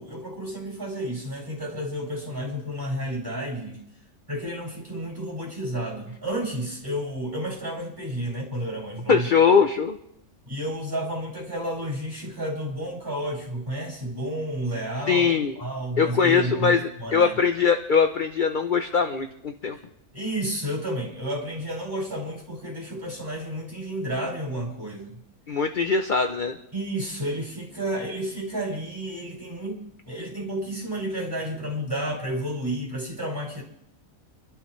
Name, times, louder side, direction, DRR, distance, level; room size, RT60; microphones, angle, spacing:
voice 1, 0.0-3.8 4.3-9.3 10.5-15.3 15.6-17.3 20.1-25.2 26.7-33.6, right 1 dB, 15° right, -3 dB, 5.3 m, -31 dB
voice 2, 9.1-10.0 15.1-15.5 16.0-19.8 25.5-26.6, left 5 dB, 40° left, 6 dB, 0.9 m, -21 dB
26.0 x 12.5 x 3.2 m, 0.77 s
omnidirectional pair, 1.4 m